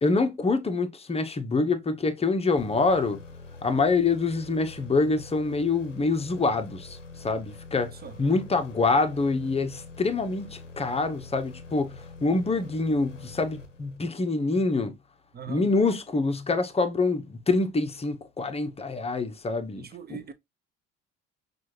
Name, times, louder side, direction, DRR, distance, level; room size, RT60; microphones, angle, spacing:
voice 1, 0.0-3.2 3.6-7.9 8.2-15.0 15.5-19.8 20.1-20.3, left 3 dB, 15° left, 0.9 m, -26 dB
sound 1, 2.6-14.3, left 3 dB, 90° left, 0.7 m, -45 dB
voice 2, 15.3-15.6 19.8-20.3, right 7 dB, 25° right, 0.9 m, -41 dB
6.0 x 2.6 x 2.9 m
figure-of-eight pair, 60°, 36 cm